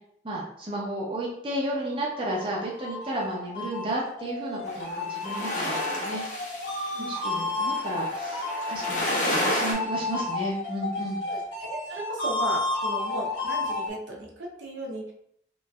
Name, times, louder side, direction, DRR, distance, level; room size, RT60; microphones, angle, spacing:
voice 1, 0.2-6.2 7.0-11.2, right 1 dB, 30° right, -4 dB, 0.6 m, -33 dB
sound 1, 2.1-13.9, left 2 dB, 75° left, 0.9 m, -32 dB
sound 2, 4.7-9.7, left 1 dB, 40° left, 0.7 m, -30 dB
voice 2, 11.2-15.1, right 1 dB, 80° right, -2 dB, 0.7 m, -35 dB
3.0 x 2.6 x 2.3 m, 0.71 s
head